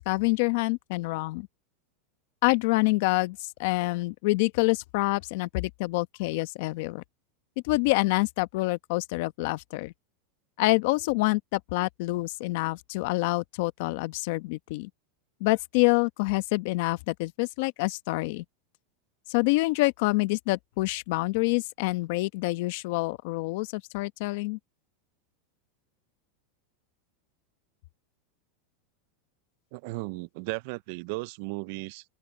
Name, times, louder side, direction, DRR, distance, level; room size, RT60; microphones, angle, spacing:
voice 1, 0.1-1.5 2.4-7.0 7.6-9.9 10.6-14.9 15.4-18.4 19.3-24.6, left 23 dB, 60° left, 1.0 m, -27 dB
voice 2, 29.7-32.0, right 25 dB, 60° right, 0.5 m, -35 dB
open air
supercardioid pair, 135°, 0 cm